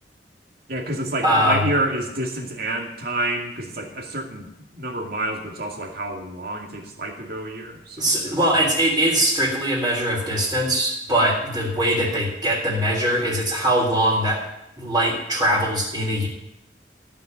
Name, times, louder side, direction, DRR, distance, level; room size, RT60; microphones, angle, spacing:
voice 1, 0.7-4.5 4.7-8.4, right 1 dB, 60° right, 1 dB, 2.3 m, -28 dB
voice 2, 1.2-1.7 8.0-14.4 14.8-16.3, right 1 dB, 20° right, -8 dB, 3.5 m, -21 dB
15.5 x 5.7 x 9.1 m, 0.83 s
head